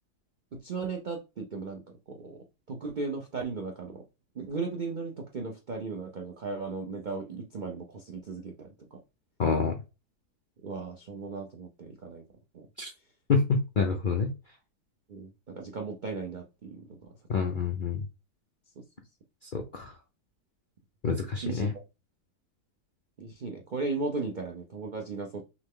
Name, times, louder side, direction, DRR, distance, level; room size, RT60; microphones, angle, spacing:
voice 1, 0.5-1.8 2.1-4.0 4.3-9.0 10.6-12.2 12.5-12.7 15.1-17.4 21.4-21.7 23.2-25.4, right 4 dB, 60° right, 0.4 m, -36 dB
voice 2, 9.4-9.8 12.8-12.9 13.3-14.3 17.3-18.0 19.5-19.9 21.0-21.7, left 5 dB, 60° left, 0.5 m, -27 dB
6.0 x 2.0 x 3.6 m
omnidirectional pair, 1.7 m